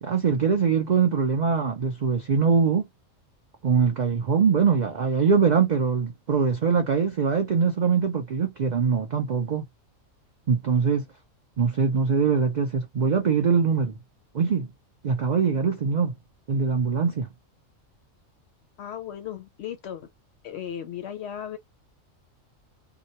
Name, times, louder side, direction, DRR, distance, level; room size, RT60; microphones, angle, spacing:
voice 1, 0.0-2.8 3.6-9.7 10.5-11.1 11.6-13.9 14.3-14.7 15.0-16.1 16.5-17.3, right 6 dB, 80° right, 0.4 m, -22 dB
voice 2, 18.8-20.1 20.4-21.6, left 9 dB, 65° left, 0.7 m, -36 dB
2.9 x 2.1 x 2.6 m
omnidirectional pair, 1.4 m